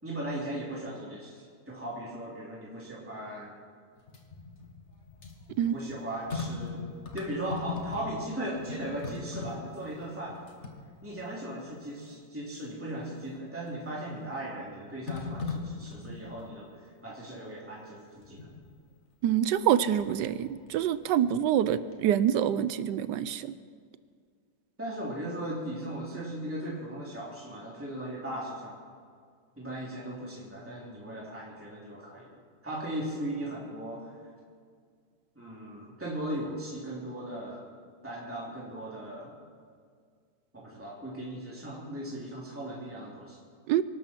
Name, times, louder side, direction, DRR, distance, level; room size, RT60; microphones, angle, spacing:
voice 1, 0.0-3.5 5.6-6.8 7.1-10.4 11.0-16.7 17.0-18.5 24.8-28.8 29.6-32.3 32.6-34.1 35.3-37.7 38.0-39.3 40.5-43.4, right 1 dB, 5° right, -5 dB, 3.1 m, -37 dB
sound 1, 4.0-8.3 8.5-11.4 11.9-12.0 13.6-14.1 15.1-16.6 18.2-18.6 19.5-20.3 20.7-21.7 21.9-22.0, left 4 dB, 40° left, 1.7 m, -40 dB
voice 2, 19.2-23.5 43.7-43.8, right 10 dB, 75° right, 15 dB, 1.2 m, -26 dB
24.0 x 12.0 x 4.5 m, 2.1 s
omnidirectional pair, 2.0 m